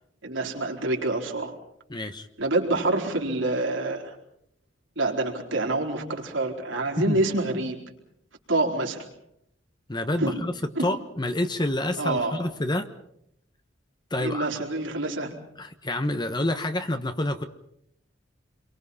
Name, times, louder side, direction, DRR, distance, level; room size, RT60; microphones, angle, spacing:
voice 1, 0.2-1.5 2.4-4.1 5.0-7.8 8.5-9.1 10.2-10.4 10.8-10.9 12.0-12.4 14.2-15.3, right 2 dB, 85° right, 1 dB, 4.4 m, -27 dB
voice 2, 1.9-2.3 7.1-7.2 9.9-10.5 10.8-12.9 14.1-14.5 15.6-17.4, left 1 dB, 25° left, 8 dB, 1.2 m, -28 dB
29.0 x 23.0 x 5.7 m, 0.75 s
head